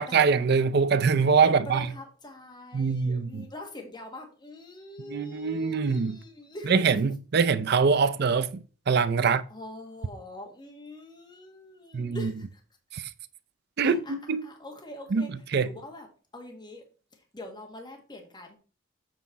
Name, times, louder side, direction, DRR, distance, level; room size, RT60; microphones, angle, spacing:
voice 1, 0.0-1.9 2.7-3.5 5.1-6.2 6.7-9.4 11.9-12.3 12.9-13.0 13.8-14.4 15.1-15.7, right 5 dB, 55° right, 0.5 m, -24 dB
voice 2, 1.4-6.8 9.2-12.6 13.8-15.3 15.6-16.1 16.3-16.8 17.1-18.6, left 1 dB, 20° left, 1.5 m, -44 dB
7.9 x 5.2 x 4.1 m
head